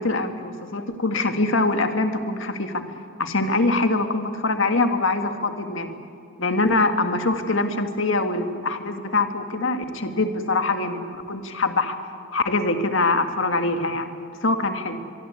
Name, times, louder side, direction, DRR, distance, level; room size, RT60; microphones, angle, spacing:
voice 1, 0.0-2.8 3.2-5.9 6.4-12.0 12.3-14.1 14.4-15.0, left 2 dB, 70° left, 6 dB, 1.9 m, -23 dB
24.5 x 23.5 x 8.5 m, 2.4 s
head